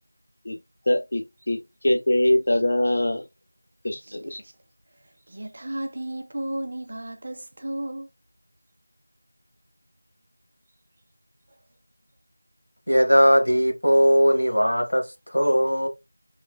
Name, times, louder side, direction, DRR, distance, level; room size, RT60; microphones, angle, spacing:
voice 1, 0.9-3.2 3.8-4.4, left 1 dB, 45° left, 0.4 m, -23 dB
voice 2, 3.9-4.5 5.0-8.1, right 1 dB, 35° right, 0.5 m, -34 dB
voice 3, 12.9-15.9, equal, 85° left, 1.1 m, -19 dB
4.3 x 3.1 x 2.3 m
figure-of-eight pair, 175°, 0 cm